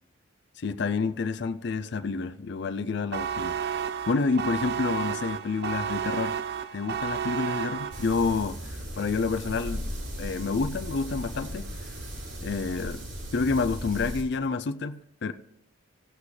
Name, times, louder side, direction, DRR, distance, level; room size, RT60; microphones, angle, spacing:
voice 1, 0.6-3.6 4.1-6.4 6.7-11.9 12.4-13.1 13.3-15.3, left 4 dB, 55° left, 0.4 m, -29 dB
sound 1, 3.1-8.4, right 8 dB, 50° right, 0.4 m, -32 dB
sound 2, 7.9-14.2, equal, 65° right, 3.0 m, -37 dB
15.0 x 8.3 x 3.2 m
head